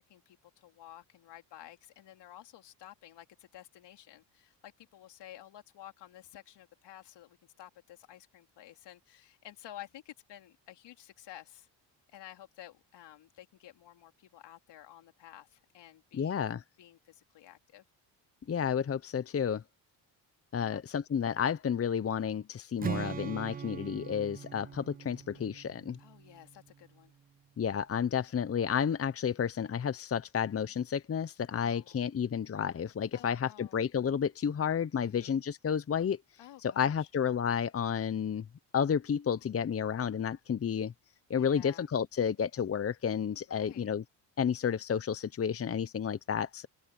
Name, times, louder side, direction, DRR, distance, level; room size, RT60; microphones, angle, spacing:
voice 1, 0.0-11.7 12.1-16.4 16.8-17.8 20.6-20.9 26.0-27.2 31.5-32.0 33.1-33.8 35.0-35.4 36.4-37.1 41.3-41.9 43.5-44.0, left 12 dB, 70° left, 3.3 m, -52 dB
voice 2, 16.1-16.6 18.5-19.6 20.5-26.0 27.6-36.2 36.6-38.4 38.7-40.9 41.3-44.0 44.4-46.7, left 7 dB, 30° left, 0.9 m, -31 dB
Strum, 22.8-26.9, right 7 dB, 20° right, 0.4 m, -41 dB
open air
supercardioid pair, 75°, 43 cm